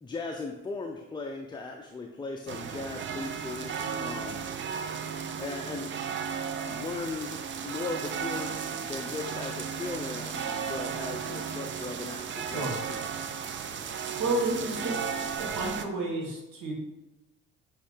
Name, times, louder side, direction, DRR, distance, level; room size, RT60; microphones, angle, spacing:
voice 1, 0.0-4.5 5.4-6.0 6.7-7.4 7.6-13.3, left 3 dB, 15° left, 2 dB, 0.5 m, -38 dB
sound 1, 2.5-15.8, right 7 dB, 35° right, 0.6 m, -35 dB
voice 2, 12.4-12.8 14.2-15.0 15.4-16.7, right 2 dB, 60° right, -1 dB, 1.8 m, -31 dB
9.5 x 3.2 x 3.4 m, 0.99 s
hypercardioid pair, 55°, 34 cm